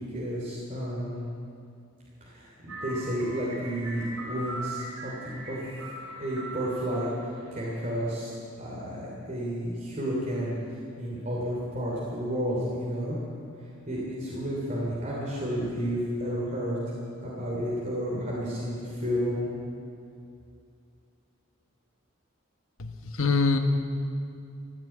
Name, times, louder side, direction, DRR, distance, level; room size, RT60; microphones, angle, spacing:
voice 1, 0.1-1.2 2.2-5.6 6.2-7.1 7.5-8.3 8.6-13.2 13.6-16.9 17.2-19.5, equal, 35° right, -6 dB, 2.9 m, -31 dB
sound 1, 2.7-8.1, right 2 dB, 85° right, 3.3 m, -40 dB
voice 2, 22.8-23.6, left 4 dB, 80° left, 6 dB, 1.3 m, -25 dB
15.0 x 11.0 x 8.7 m, 2.5 s
head